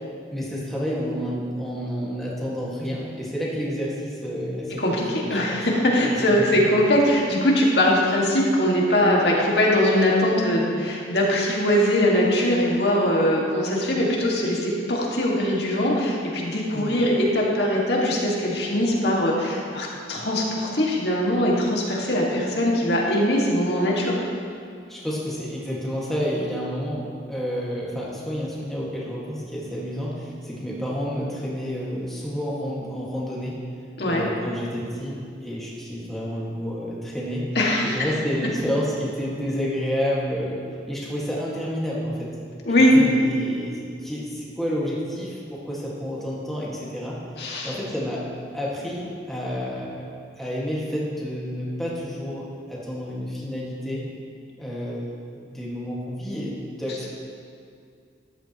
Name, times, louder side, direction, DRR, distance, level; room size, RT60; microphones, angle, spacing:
voice 1, 0.3-4.8 5.2-5.6 6.0-6.6 16.7-17.0 24.9-33.6 34.0-37.4 37.8-40.6 40.9-42.3 42.8-47.2 47.6-48.2 48.5-50.1 50.3-54.0 54.6-57.1, equal, ahead, -6 dB, 1.8 m, -30 dB
voice 2, 4.8-24.2 34.0-34.3 37.6-38.1 42.7-42.9 47.4-47.7, left 1 dB, 75° left, -3 dB, 1.9 m, -21 dB
13.5 x 11.0 x 3.0 m, 2.3 s
head